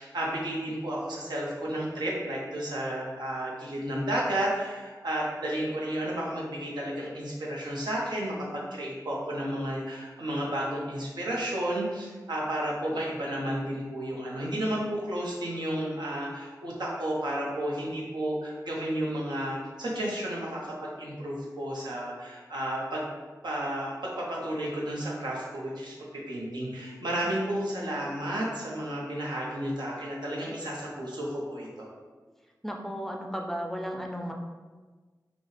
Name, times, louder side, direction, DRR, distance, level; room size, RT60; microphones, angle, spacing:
voice 1, 0.0-23.1 23.4-31.9, right 1 dB, 85° right, -4 dB, 1.0 m, -32 dB
voice 2, 32.6-34.3, equal, 5° left, 1 dB, 0.5 m, -34 dB
5.1 x 2.3 x 3.3 m, 1.4 s
wide cardioid pair, 65°, 7 cm